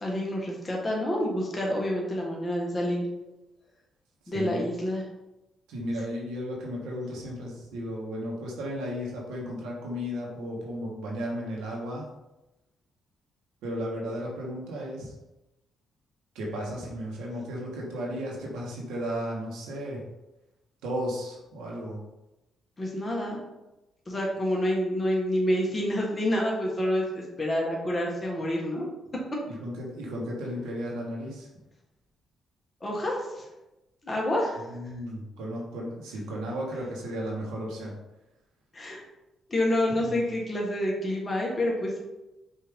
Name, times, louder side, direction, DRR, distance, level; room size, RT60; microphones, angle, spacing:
voice 1, 0.0-3.1 4.3-5.0 22.8-23.4 24.1-28.9 32.8-33.4 34.0-34.7 38.7-39.0 39.5-42.0, left 1 dB, 25° left, -2 dB, 1.3 m, -28 dB
voice 2, 4.3-4.6 5.7-12.0 13.6-15.1 16.3-20.0 20.8-22.0 29.6-31.5 34.7-37.9 39.9-40.2, equal, 90° right, -3 dB, 1.3 m, -34 dB
5.2 x 2.7 x 3.5 m, 0.98 s
cardioid pair, 90°, 0 cm